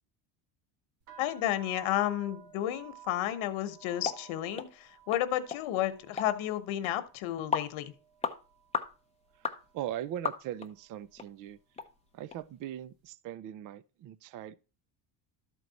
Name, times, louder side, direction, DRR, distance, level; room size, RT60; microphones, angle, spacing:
sound 1, 1.0-8.9 9.2-9.9 10.5-10.8 11.0-12.5, right 10 dB, 75° right, 2.1 m, -54 dB
voice 1, 1.2-7.9, left 12 dB, 85° left, 1.1 m, -32 dB
sound 2, 4.0-4.2 4.6-4.7 5.1-5.2 5.5-5.6 6.2-6.3 6.8-6.9 7.5-7.7 8.2-8.4 8.7-8.9 9.4-9.6 10.3-10.7 11.2-11.3 11.8-11.9 12.3-12.4, left 5 dB, 15° left, 0.5 m, -33 dB
voice 2, 9.7-11.6 12.1-14.5, right 11 dB, 45° right, 0.4 m, -40 dB
12.5 x 4.7 x 4.0 m
cardioid pair, 150°, 47 cm